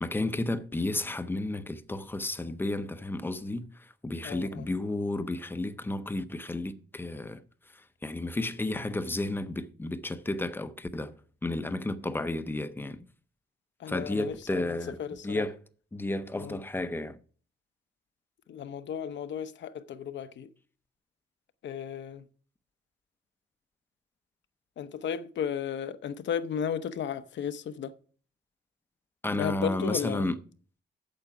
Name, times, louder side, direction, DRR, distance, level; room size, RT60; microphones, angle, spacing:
voice 1, 0.0-3.7 4.0-7.4 8.0-11.1 11.4-13.0 13.9-15.0 15.2-15.6 15.9-17.2 29.2-30.4, left 2 dB, 10° left, 0.6 m, -32 dB
voice 2, 4.2-4.7 13.8-15.5 16.4-16.6 18.5-20.5 21.6-22.3 24.8-27.9 29.3-30.3, left 8 dB, 80° left, 0.8 m, -34 dB
8.7 x 7.8 x 5.8 m
wide cardioid pair, 170°, 19 cm